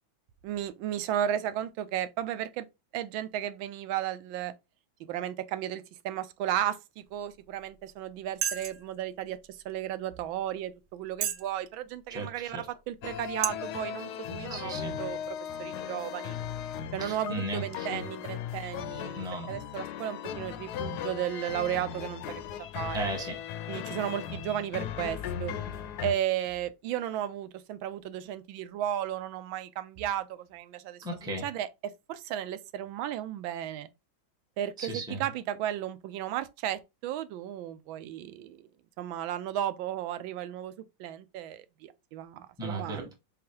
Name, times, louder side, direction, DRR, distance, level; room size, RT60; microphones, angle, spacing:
voice 1, 0.4-2.7 2.9-4.5 5.1-9.4 9.6-16.4 16.9-22.4 22.7-23.1 23.7-25.5 26.0-31.0 31.4-33.9 34.6-38.7 39.0-40.7 41.0-43.1, right 11 dB, 85° right, 1.4 m, -34 dB
sound 1, 7.6-7.7 8.4-8.9 9.6-9.7 10.3-10.4 11.1-11.5 12.1-12.2 12.9-13.0 13.4-13.5, right 9 dB, 70° right, 0.8 m, -31 dB
voice 2, 12.1-12.7 14.5-15.0 17.0-18.1 19.1-19.6 22.9-23.4 31.0-31.5 34.8-35.3 42.6-43.1, right 1 dB, 5° right, 0.7 m, -36 dB
sound 2, 13.0-26.1, left 9 dB, 75° left, 0.9 m, -37 dB
3.9 x 3.7 x 2.7 m
omnidirectional pair, 2.1 m